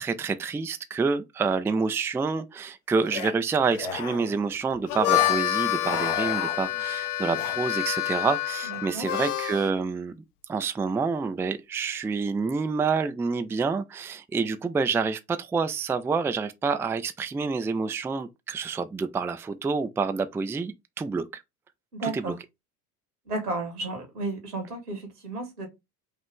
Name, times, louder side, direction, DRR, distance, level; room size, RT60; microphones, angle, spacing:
voice 1, 0.0-10.1 10.5-21.4 22.0-22.3, right 4 dB, 5° right, 0.4 m, -28 dB
sound 1, 3.0-3.3 3.7-4.4 5.0-5.4 5.7-6.8 7.3-7.6, left 5 dB, 60° left, 1.3 m, -34 dB
Harmonica, 4.7-9.7, left 13 dB, 80° left, 0.8 m, -27 dB
voice 2, 8.6-9.1 21.9-22.4 23.3-25.7, right 2 dB, 90° right, 2.1 m, -33 dB
5.4 x 2.5 x 3.6 m
hypercardioid pair, 75°, 45 cm